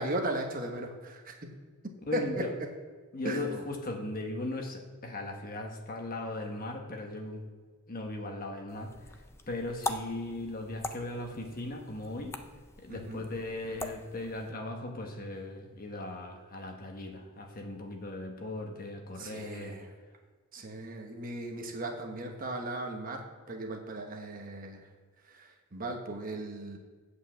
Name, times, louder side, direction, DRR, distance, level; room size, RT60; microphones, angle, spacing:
voice 1, 0.0-1.3 2.1-2.4 3.2-3.6 12.9-13.2 19.2-19.9 20.5-24.8 25.3-26.8, right 1 dB, 40° right, 2 dB, 1.1 m, -36 dB
voice 2, 2.1-2.5 3.1-7.4 7.9-8.9 9.5-12.3 12.8-19.8, left 2 dB, 40° left, 3 dB, 1.1 m, -38 dB
sound 1, 8.7-14.5, left 2 dB, 10° left, 0.4 m, -42 dB
8.5 x 4.9 x 7.1 m, 1.5 s
head